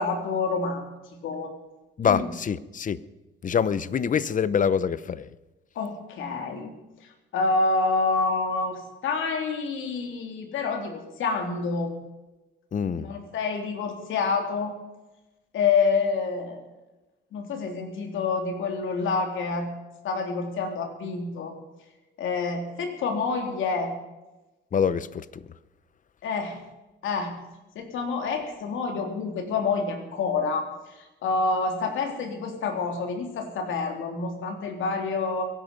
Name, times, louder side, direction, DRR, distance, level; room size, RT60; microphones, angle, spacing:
voice 1, 0.0-1.5 2.1-2.3 5.7-6.7 7.3-11.9 13.0-14.7 15.5-16.6 17.3-19.7 20.0-21.6 22.2-23.9 26.2-26.6 27.0-27.3 27.7-30.7 31.0-35.4, left 4 dB, 80° left, 4 dB, 3.2 m, -27 dB
voice 2, 2.0-3.0 3.4-5.3 12.7-13.1 24.7-25.3, left 7 dB, 40° left, 17 dB, 0.8 m, -25 dB
23.5 x 11.0 x 5.3 m, 1.1 s
cardioid pair, 90°, 20 cm